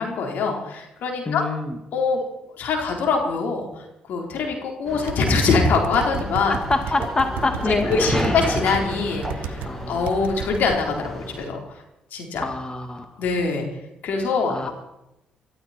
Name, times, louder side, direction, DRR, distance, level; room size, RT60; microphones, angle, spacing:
voice 1, 0.0-1.4 1.9-2.2 2.6-6.6 7.7-11.6 12.1-12.4 13.2-13.6 14.0-14.7, left 4 dB, 70° left, 1 dB, 4.2 m, -24 dB
voice 2, 1.3-1.8 6.5-8.4 9.6-10.1 12.4-13.1 14.5-14.7, left 3 dB, 30° left, 5 dB, 2.1 m, -26 dB
sound 1, 4.9-11.5, equal, 10° left, 6.3 m, -31 dB
sound 2, 5.0-9.7 10.1-10.8, right 8 dB, 80° right, 1.2 m, -32 dB
23.5 x 13.5 x 4.5 m, 0.90 s
supercardioid pair, 55°, 3 cm